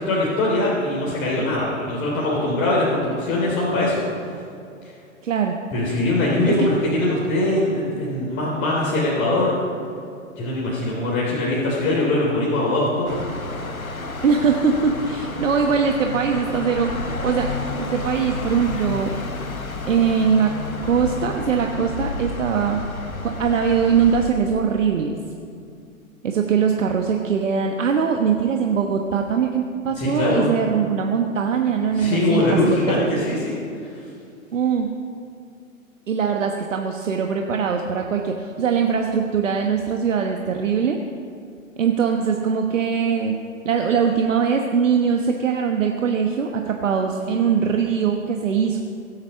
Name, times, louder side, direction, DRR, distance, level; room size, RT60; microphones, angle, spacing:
voice 1, 0.0-4.3 4.8-4.9 5.7-9.6 10.4-13.3 29.9-30.5 31.9-34.0, left 2 dB, 30° left, -5 dB, 3.3 m, -22 dB
voice 2, 5.2-5.6 6.5-6.7 14.2-16.9 17.2-17.5 17.8-19.1 19.9-20.5 20.8-22.8 23.2-25.1 26.2-33.2 34.5-34.9 36.1-41.0 41.8-43.3 43.6-48.8, right 6 dB, 65° right, 3 dB, 1.3 m, -21 dB
sound 1, 13.1-24.3, left 2 dB, 85° left, 1.5 m, -31 dB
22.5 x 8.8 x 5.4 m, 2.4 s
figure-of-eight pair, 115°, 41 cm